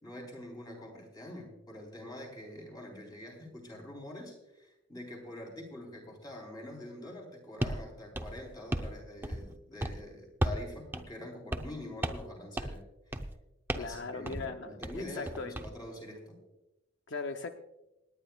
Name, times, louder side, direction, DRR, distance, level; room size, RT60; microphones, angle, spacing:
voice 1, 0.0-13.2 13.8-16.4, left 1 dB, 20° left, 0 dB, 3.6 m, -45 dB
sound 1, 7.6-7.8 8.1-8.9 9.2-9.5 9.8-10.0 10.4-10.7 10.9-11.0 11.5-11.8 12.0-12.3 12.6-12.8 13.1-13.3 13.7-14.0 14.3-14.5 14.8-15.7, right 1 dB, 10° right, 0.6 m, -34 dB
voice 2, 13.7-14.8 15.2-15.5 17.1-17.5, left 4 dB, 70° left, 6 dB, 0.7 m, -38 dB
27.5 x 9.9 x 2.3 m, 0.96 s
head